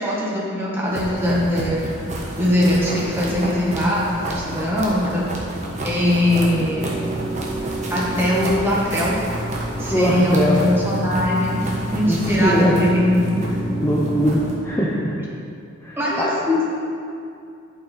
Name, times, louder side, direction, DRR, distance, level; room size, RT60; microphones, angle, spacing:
voice 1, 0.0-1.9 2.4-5.3 5.8-6.9 7.9-9.2 9.8-13.2 16.0-16.8, left 1 dB, 10° right, -6 dB, 1.7 m, -21 dB
sound 1, 0.9-14.6, right 1 dB, 35° right, 1.3 m, -28 dB
voice 2, 9.9-10.6 12.1-12.7 13.8-14.4 14.6-15.1 15.8-16.3, equal, 10° left, -6 dB, 0.7 m, -21 dB
11.0 x 5.5 x 4.5 m, 2.5 s
head